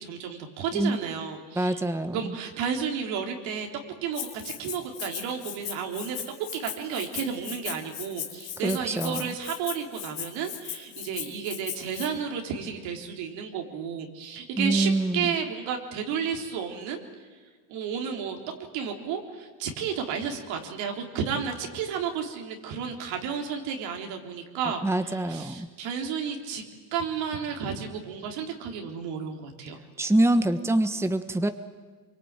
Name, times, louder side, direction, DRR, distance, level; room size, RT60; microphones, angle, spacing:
voice 1, 0.0-1.8 2.1-6.2 6.5-17.0 17.7-18.4 18.7-26.6 26.9-29.8, right 7 dB, 80° right, 3 dB, 3.9 m, -32 dB
voice 2, 1.6-2.3 8.6-9.3 14.6-15.3 24.8-25.7 30.0-31.5, right 1 dB, 5° right, 9 dB, 1.3 m, -25 dB
Rattle (instrument), 4.1-12.1, left 10 dB, 70° left, 4.3 m, -38 dB
25.5 x 23.5 x 9.1 m, 1.5 s
supercardioid pair, 90°, 45 cm